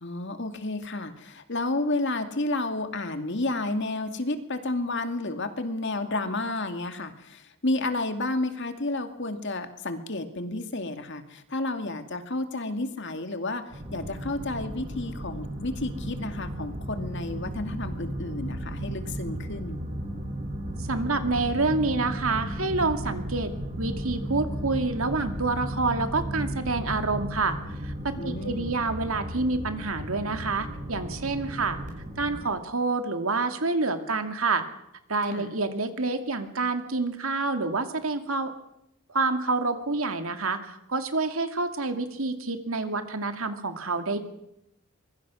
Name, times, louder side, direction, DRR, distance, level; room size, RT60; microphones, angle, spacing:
voice 1, 0.0-19.8 28.2-28.7 35.3-35.5, left 2 dB, 55° left, 8 dB, 2.2 m, -31 dB
sound 1, 13.7-32.5, right 1 dB, 35° right, 5.6 m, -35 dB
voice 2, 20.8-23.5 23.8-31.8 32.2-34.7 35.1-38.5 39.1-44.2, right 3 dB, 75° right, 7 dB, 2.4 m, -28 dB
24.5 x 22.5 x 6.3 m, 0.80 s
head